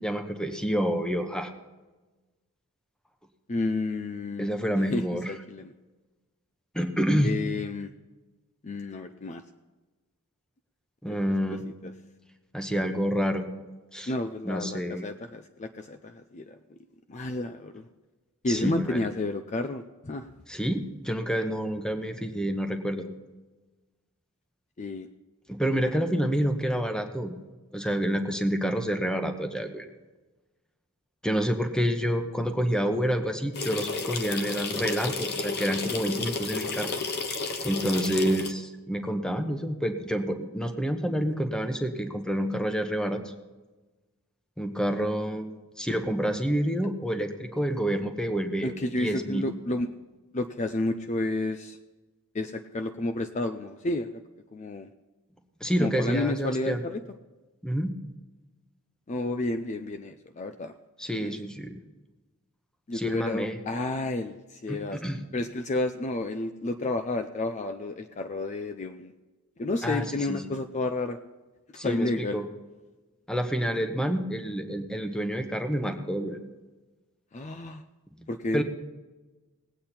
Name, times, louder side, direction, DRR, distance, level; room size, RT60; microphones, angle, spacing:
voice 1, 0.0-1.5 4.4-5.3 6.7-7.3 11.0-11.6 12.5-13.5 13.9-14.1 14.4-15.0 18.5-19.0 20.5-23.1 25.5-27.3 27.7-29.9 31.2-36.9 37.3-37.4 37.6-43.3 44.6-45.5 45.8-48.7 49.0-49.5 55.6-56.8 57.6-57.9 61.0-61.8 62.9-63.6 64.7-65.2 69.8-70.5 71.7-72.4 73.3-76.4 78.2-78.6, equal, 5° left, 6 dB, 1.0 m, -28 dB
voice 2, 3.5-4.5 4.9-5.7 7.2-7.9 8.6-9.4 11.8-11.9 14.1-16.6 17.1-17.9 18.4-20.3 24.8-25.1 48.6-49.9 50.3-51.8 52.3-54.1 54.5-54.9 55.8-57.0 59.1-60.7 61.1-61.4 62.9-65.0 65.3-69.1 69.6-71.2 71.7-72.4 77.3-77.8 78.3-78.6, left 2 dB, 30° left, 8 dB, 0.5 m, -31 dB
sound 1, 33.5-38.5, left 4 dB, 45° left, 0.9 m, -32 dB
19.5 x 8.6 x 4.3 m, 1.2 s
head